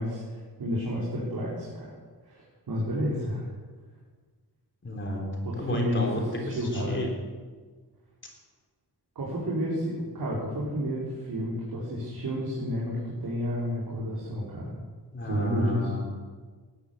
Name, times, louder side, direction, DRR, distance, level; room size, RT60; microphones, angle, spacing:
voice 1, 0.0-1.9 2.2-3.5 5.4-7.1 9.2-14.8 15.2-15.9, equal, 65° right, -5 dB, 4.2 m, -31 dB
voice 2, 4.8-5.2 5.6-6.2 6.5-7.1 15.1-16.0, left 1 dB, 30° left, 0 dB, 3.4 m, -32 dB
18.0 x 11.5 x 7.0 m, 1.5 s
wide cardioid pair, 130°, 39 cm